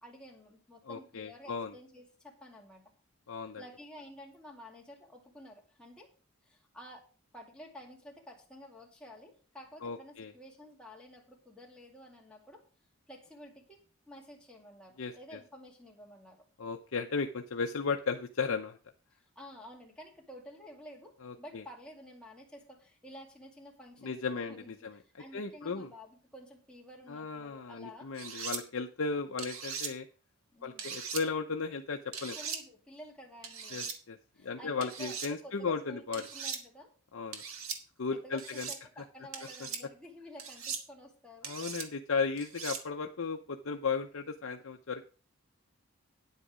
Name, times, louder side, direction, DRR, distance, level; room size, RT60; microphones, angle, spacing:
voice 1, 0.0-2.8 3.3-6.1 6.4-7.1 7.3-12.6 13.1-16.5 19.1-24.2 24.5-28.1 30.5-30.9 32.3-34.0 34.3-36.9 38.1-41.5, equal, 5° left, -1 dB, 2.2 m, -51 dB
voice 2, 0.9-1.7 3.3-3.6 9.8-10.3 15.0-15.4 16.6-18.8 21.2-21.6 24.0-25.0 25.3-25.9 27.1-30.1 30.6-32.4 33.7-34.2 34.4-36.2 37.1-37.4 38.0-38.7 41.4-45.0, left 5 dB, 75° left, 4 dB, 0.7 m, -35 dB
sound 1, 28.2-28.6 29.4-29.9 30.8-31.2 32.1-32.6 33.4-34.0 34.8-35.3 36.1-36.6 37.3-37.8 38.4-38.8 39.3-39.8 40.4-40.8 41.4-41.9 42.4-42.8, right 6 dB, 85° right, 1.5 m, -39 dB
9.7 x 8.2 x 5.0 m, 0.38 s
head